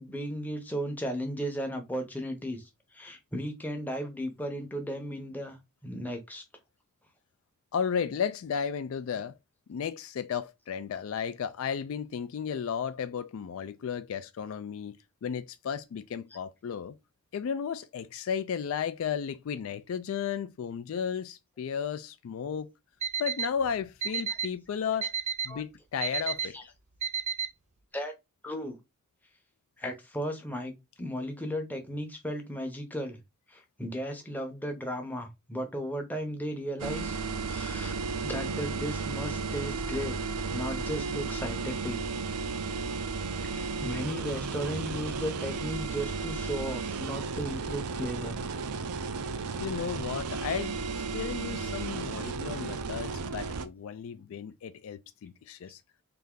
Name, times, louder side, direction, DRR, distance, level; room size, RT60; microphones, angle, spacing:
voice 1, 0.0-6.4 25.5-25.6 26.4-26.6 27.9-28.1 28.4-28.8 29.8-33.2 33.5-38.0 38.2-40.2 40.5-42.0 43.5-48.4, equal, 10° left, 0.7 m, -35 dB
voice 2, 7.7-9.3 9.7-17.0 17.3-22.7 23.2-25.1 25.4-26.6 49.6-50.8 51.1-55.8, left 7 dB, 65° left, 0.3 m, -34 dB
Alarm, 23.0-23.5 24.0-24.5 25.0-25.5 26.0-26.5 27.0-27.5, right 7 dB, 30° right, 0.5 m, -30 dB
sound 1, 36.8-53.7, right 4 dB, 90° right, 0.5 m, -34 dB
3.4 x 2.6 x 3.7 m
head